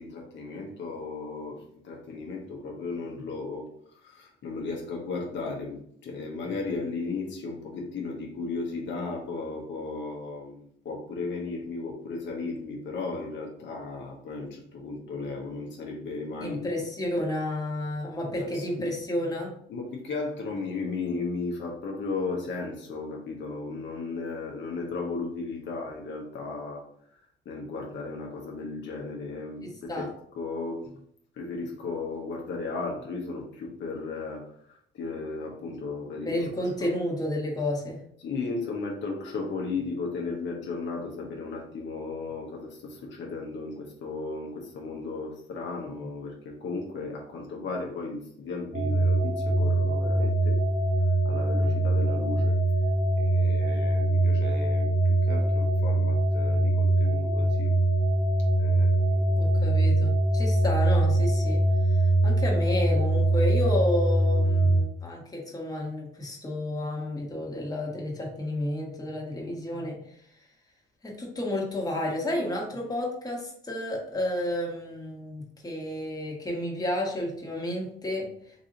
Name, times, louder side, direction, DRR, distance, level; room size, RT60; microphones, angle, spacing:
voice 1, 0.0-16.7 18.4-18.9 19.7-26.8 27.1-27.2 27.4-30.1 30.3-30.9 31.3-36.4 36.8-36.9 38.2-50.6 51.2-52.6 53.2-57.8 58.6-59.4, left 3 dB, 70° left, 0 dB, 0.9 m, -35 dB
voice 2, 16.4-19.5 29.6-30.1 36.2-38.0 59.3-61.6 61.9-70.0 71.0-78.3, left 1 dB, 20° left, -1 dB, 1.3 m, -31 dB
sound 1, 48.7-64.8, right 1 dB, 40° right, 0.8 m, -23 dB
4.0 x 2.7 x 3.8 m, 0.66 s
cardioid pair, 90°, 20 cm